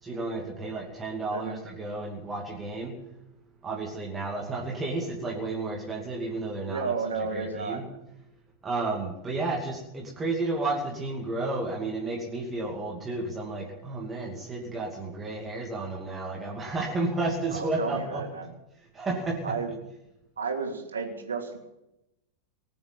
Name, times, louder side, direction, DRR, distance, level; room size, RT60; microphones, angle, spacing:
voice 1, 0.0-2.9 3.6-6.9 7.3-7.8 8.6-18.2 18.9-19.4, right 2 dB, 20° right, -2 dB, 2.7 m, -32 dB
voice 2, 6.7-7.8 17.5-18.5 19.4-19.7 20.4-21.6, right 4 dB, 70° right, 2 dB, 2.9 m, -32 dB
20.0 x 7.1 x 8.8 m, 0.89 s
figure-of-eight pair, 90°, 0 cm